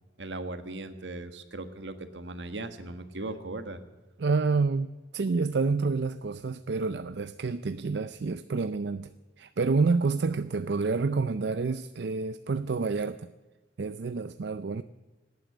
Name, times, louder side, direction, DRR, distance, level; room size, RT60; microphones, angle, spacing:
voice 1, 0.2-3.8, right 2 dB, 90° right, 9 dB, 1.5 m, -38 dB
voice 2, 4.2-9.1 9.4-13.3 13.8-14.8, right 4 dB, 70° right, 13 dB, 0.5 m, -28 dB
18.0 x 9.7 x 8.2 m, 1.2 s
head